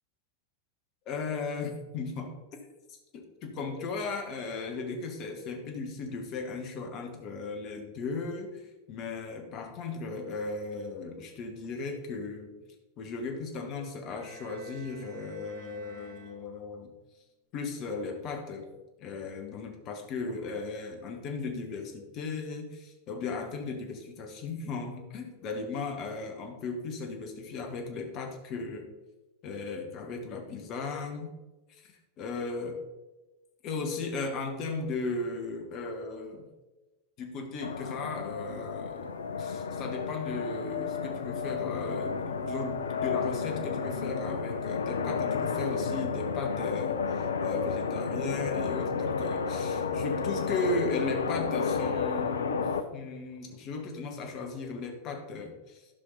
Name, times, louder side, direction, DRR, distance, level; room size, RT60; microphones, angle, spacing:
voice 1, 1.0-2.3 2.9-12.5 13.0-16.9 17.5-18.7 19.0-28.9 29.4-31.3 31.7-32.8 33.6-36.5 37.2-55.9, left 3 dB, 35° left, 3 dB, 1.5 m, -36 dB
Bowed string instrument, 14.1-16.8, right 4 dB, 85° left, 2.4 m, -52 dB
sound 1, 37.6-52.8, left 5 dB, 70° left, 0.5 m, -32 dB
11.5 x 5.8 x 4.1 m, 1.1 s
figure-of-eight pair, 90°, 0 cm